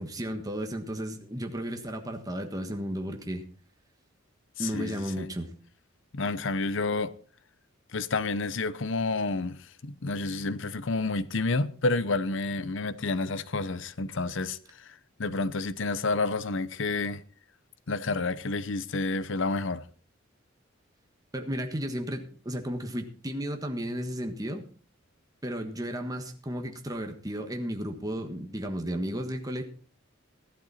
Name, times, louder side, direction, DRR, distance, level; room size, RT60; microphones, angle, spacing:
voice 1, 0.0-3.5 4.6-5.5 21.3-24.6 25.4-29.6, equal, 20° right, 1.4 m, -34 dB
voice 2, 4.6-5.3 6.1-7.1 7.9-9.6 9.8-14.6 14.9-15.0 15.2-17.2 17.9-19.8, left 3 dB, 65° left, 0.8 m, -29 dB
14.5 x 12.0 x 4.2 m
head